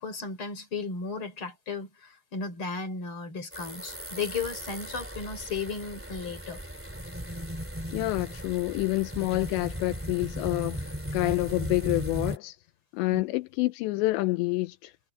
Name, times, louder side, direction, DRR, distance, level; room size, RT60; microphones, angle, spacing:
voice 1, 0.0-6.6 13.1-13.2, left 4 dB, 25° left, 5.2 m, -35 dB
sound 1, 3.5-12.4, equal, 5° right, 1.2 m, -37 dB
voice 2, 7.9-12.6 12.9-14.9, left 20 dB, 85° left, 2.6 m, -28 dB
omnidirectional pair, 5.7 m